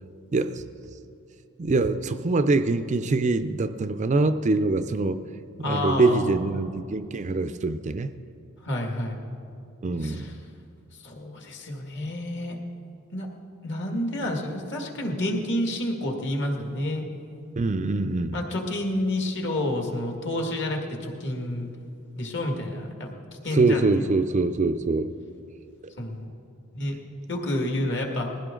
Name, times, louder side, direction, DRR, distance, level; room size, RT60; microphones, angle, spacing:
voice 1, 0.3-0.6 1.6-5.2 5.6-8.1 9.8-10.4 17.6-18.4 23.5-25.1, right 3 dB, 35° right, 10 dB, 0.4 m, -24 dB
voice 2, 5.6-6.4 8.6-9.2 10.0-10.4 11.0-12.6 13.1-13.3 13.6-17.0 18.3-21.7 22.2-23.1 23.4-24.1 26.0-26.3 26.7-27.0 27.3-28.3, left 1 dB, 55° left, 1 dB, 2.0 m, -29 dB
20.5 x 15.5 x 3.8 m, 2.6 s
head